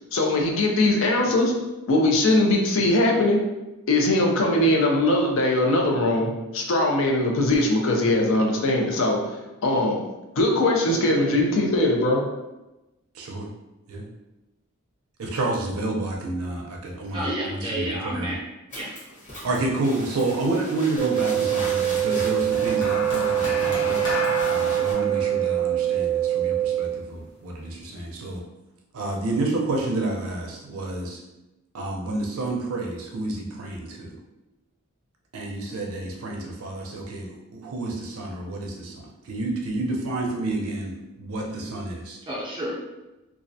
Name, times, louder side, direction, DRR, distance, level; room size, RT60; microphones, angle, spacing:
voice 1, 0.1-1.6 1.9-3.4 3.9-10.1 10.4-12.3, left 1 dB, 60° left, 0 dB, 0.4 m, -21 dB
voice 2, 13.1-13.5 13.9-14.1 15.2-18.4 19.4-24.2 24.5-28.4 28.9-31.2 31.7-34.1 35.3-42.2, right 2 dB, 75° right, 0 dB, 0.4 m, -29 dB
voice 3, 17.1-18.4 18.7-18.9 42.3-42.8, right 1 dB, 20° right, -5 dB, 0.5 m, -30 dB
sound 1, 18.7-24.9, equal, 35° left, 1.0 m, -38 dB
sound 2, 21.0-27.0, right 12 dB, 15° left, 0.7 m, -24 dB
sound 3, 22.5-27.0 27.9-28.1, left 1 dB, 85° left, 0.8 m, -32 dB
2.3 x 2.1 x 2.6 m, 1.0 s
head